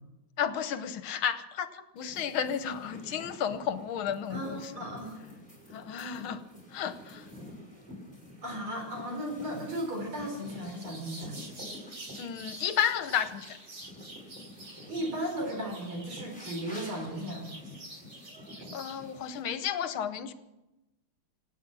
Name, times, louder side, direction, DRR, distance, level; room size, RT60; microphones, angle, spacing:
voice 1, 0.4-4.7 5.7-6.4 6.7-7.3 12.2-13.6 18.7-20.3, left 8 dB, 75° left, 11 dB, 1.7 m, -32 dB
sound 1, 2.0-19.4, left 1 dB, 5° left, 5.4 m, -49 dB
voice 2, 4.3-5.2 8.4-11.4 14.8-17.5, equal, 75° right, 0 dB, 5.4 m, -36 dB
sound 2, 10.1-19.0, right 1 dB, 50° right, 4.4 m, -47 dB
26.5 x 9.0 x 6.2 m, 1.0 s
omnidirectional pair, 2.3 m